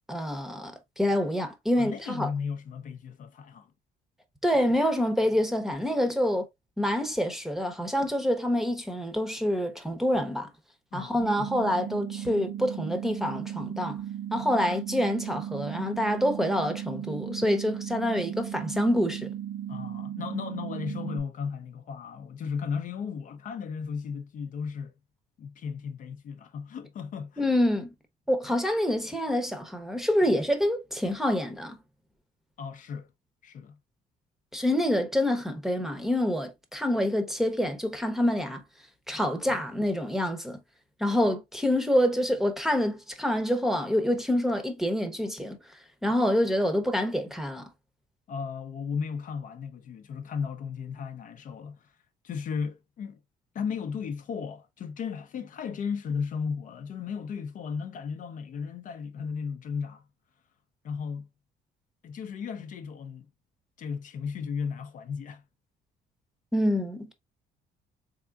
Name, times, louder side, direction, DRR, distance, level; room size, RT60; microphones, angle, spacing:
voice 1, 0.1-2.3 4.4-6.5 6.8-10.5 10.9-14.0 14.3-19.3 27.4-27.9 28.3-31.8 34.5-38.6 39.1-40.6 41.0-45.6 46.0-47.7 66.5-67.1, left 1 dB, ahead, 0.8 m, -27 dB
voice 2, 1.8-3.7 10.9-11.5 19.7-24.9 25.4-27.5 32.6-33.1 33.4-33.8 39.5-39.6 48.3-51.9 52.2-53.2 53.5-60.0 60.8-61.3 62.0-63.3 63.8-65.4, left 6 dB, 50° left, 0.6 m, -35 dB
sound 1, 11.2-21.2, right 10 dB, 75° right, 1.1 m, -36 dB
3.6 x 3.6 x 2.3 m
cardioid pair, 110°, 17 cm